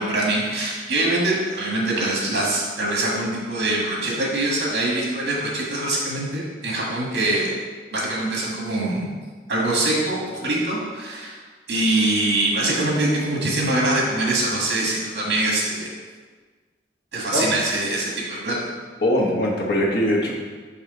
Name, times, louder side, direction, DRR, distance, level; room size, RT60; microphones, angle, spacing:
voice 1, 0.0-7.5 7.9-9.1 9.5-11.3 11.7-15.9 17.1-18.5, right 2 dB, 80° right, -3 dB, 1.7 m, -23 dB
voice 2, 19.0-20.3, left 1 dB, 60° left, -3 dB, 1.1 m, -21 dB
5.5 x 5.0 x 3.8 m, 1.5 s
head